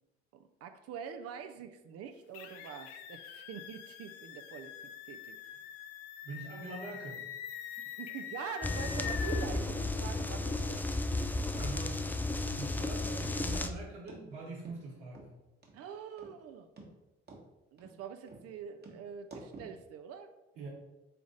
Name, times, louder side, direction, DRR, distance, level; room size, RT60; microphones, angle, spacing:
voice 1, 0.3-4.7 5.1-5.4 7.7-10.8 15.7-16.7 17.7-20.3, right 7 dB, 50° right, 8 dB, 0.5 m, -45 dB
sound 1, 2.3-9.5, left 9 dB, 70° left, 0.5 m, -44 dB
voice 2, 6.2-7.2 11.4-12.0 12.6-15.3 20.6-20.7, right 3 dB, 70° right, -8 dB, 1.2 m, -43 dB
sound 2, 8.6-13.7, left 2 dB, 5° left, 0.3 m, -33 dB
sound 3, 13.6-13.7 14.1-14.2 14.7-14.8 15.1-15.3 15.6-15.7 16.2-16.4 16.8-16.9 17.3-17.4 17.8-18.0 18.3-18.4 18.8-19.0 19.3-19.7, right 3 dB, 35° right, 1.2 m, -49 dB
3.6 x 3.4 x 3.9 m, 1.0 s
hypercardioid pair, 55°, 31 cm